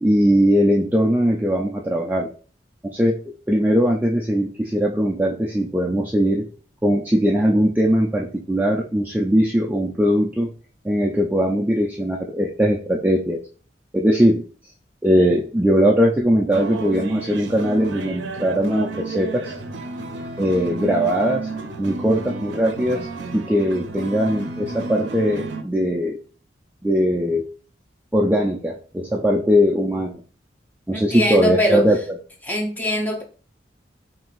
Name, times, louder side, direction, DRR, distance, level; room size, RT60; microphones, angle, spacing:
voice 1, 0.0-2.3 2.9-3.1 3.5-6.4 6.8-10.5 10.8-13.4 13.9-14.4 15.0-19.5 20.4-21.5 21.8-23.1 23.3-26.2 26.8-27.4 28.1-30.2 30.9-32.0, equal, 10° right, -1 dB, 0.3 m, -20 dB
sound 1, 16.5-25.6, right 3 dB, 80° right, 0.5 m, -32 dB
voice 2, 30.9-31.8 32.4-33.2, equal, 10° left, 1 dB, 0.7 m, -21 dB
6.0 x 2.6 x 2.4 m, 0.40 s
head